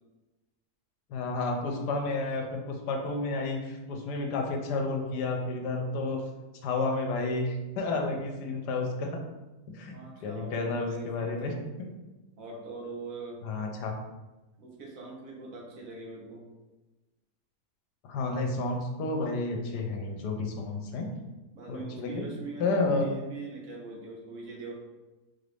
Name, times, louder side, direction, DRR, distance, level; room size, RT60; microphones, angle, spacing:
voice 1, 1.1-6.2 6.6-9.2 9.7-10.0 10.2-11.9 13.4-13.9 18.0-21.1 21.7-22.2 22.6-23.1, left 3 dB, 80° left, 3 dB, 1.2 m, -31 dB
voice 2, 9.9-11.5 12.4-13.4 14.6-16.5 21.5-24.7, right 3 dB, 60° right, -2 dB, 1.3 m, -42 dB
4.2 x 2.5 x 3.3 m, 1.1 s
omnidirectional pair, 1.7 m